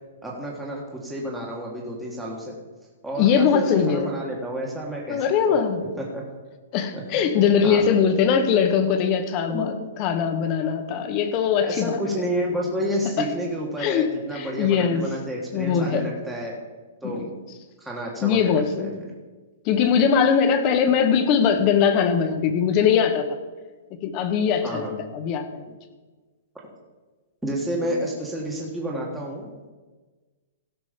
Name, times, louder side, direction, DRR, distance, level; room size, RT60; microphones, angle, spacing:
voice 1, 0.2-2.6 3.0-5.6 6.0-6.2 6.9-7.4 7.6-7.8 9.5-9.6 11.6-16.6 17.0-17.2 17.8-18.9 24.6-24.9 27.4-29.7, equal, 5° right, -3 dB, 1.5 m, -30 dB
voice 2, 3.2-4.1 5.1-5.8 6.7-9.7 10.0-12.0 13.2-13.3 13.8-15.1 15.5-16.1 17.0-17.3 18.2-19.0 19.6-23.3 24.0-25.6 27.9-28.0, left 7 dB, 25° left, 8 dB, 1.0 m, -21 dB
16.5 x 6.1 x 5.1 m, 1.3 s
hypercardioid pair, 170°, 0 cm